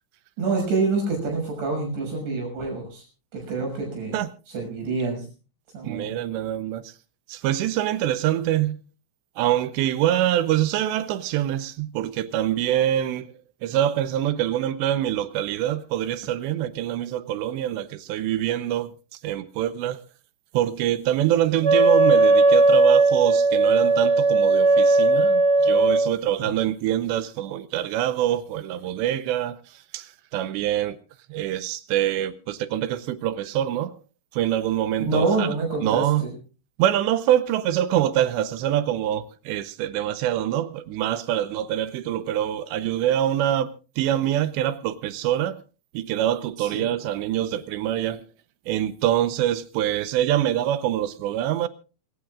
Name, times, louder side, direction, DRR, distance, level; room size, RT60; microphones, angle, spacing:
voice 1, 0.4-3.0 3.3-4.2 4.5-5.3 5.7-6.1 35.0-36.3 46.6-46.9, right 3 dB, 60° right, 8.3 m, -26 dB
voice 2, 5.8-6.9 7.3-8.8 9.4-13.3 13.6-18.9 19.2-20.0 20.5-31.0 31.3-33.9 34.3-35.5 35.8-36.2 36.8-43.7 44.0-45.6 45.9-48.2 48.7-51.7, right 12 dB, 80° right, 2.7 m, -25 dB
Wind instrument woodwind instrument, 21.6-26.1, right 3 dB, 25° right, 1.6 m, -17 dB
25.5 x 16.0 x 2.4 m
omnidirectional pair, 5.7 m